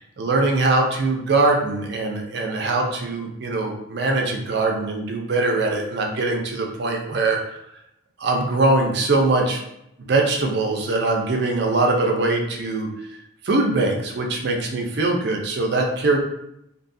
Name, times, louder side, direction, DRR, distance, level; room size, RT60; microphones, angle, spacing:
voice 1, 0.0-7.6 8.2-9.6 10.0-12.9 13.4-16.2, right 2 dB, 55° right, 1 dB, 0.4 m, -22 dB
2.7 x 2.3 x 2.6 m, 0.81 s
head